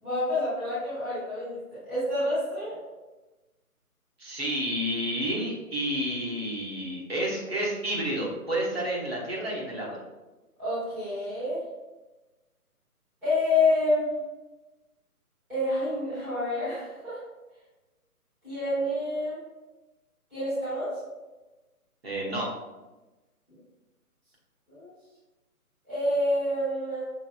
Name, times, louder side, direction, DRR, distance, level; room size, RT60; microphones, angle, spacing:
voice 1, 0.0-2.8 10.6-11.6 13.2-14.2 15.5-17.2 18.4-19.4 20.3-21.0 23.5-23.6 24.7-24.9 25.8-27.0, left 2 dB, 5° right, -18 dB, 1.0 m, -28 dB
voice 2, 4.2-10.0 22.0-22.5, right 1 dB, 40° right, -4 dB, 1.2 m, -30 dB
6.1 x 3.5 x 2.3 m, 1.1 s
figure-of-eight pair, 145°, 45 cm